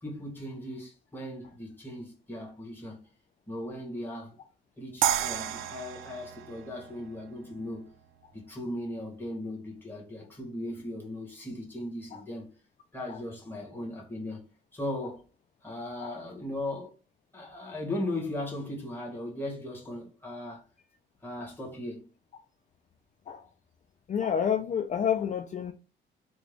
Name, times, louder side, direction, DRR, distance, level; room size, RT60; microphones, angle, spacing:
voice 1, 0.0-3.0 3.5-4.4 4.8-7.9 8.3-12.5 12.9-14.5 14.7-15.3 15.6-16.9 17.3-20.6 21.2-22.1, left 1 dB, 10° left, 1.8 m, -37 dB
sound 1, 5.0-8.1, right 11 dB, 90° right, 0.4 m, -32 dB
voice 2, 24.1-25.7, left 8 dB, 40° left, 0.4 m, -29 dB
3.4 x 2.5 x 3.4 m
cardioid pair, 90°, 20 cm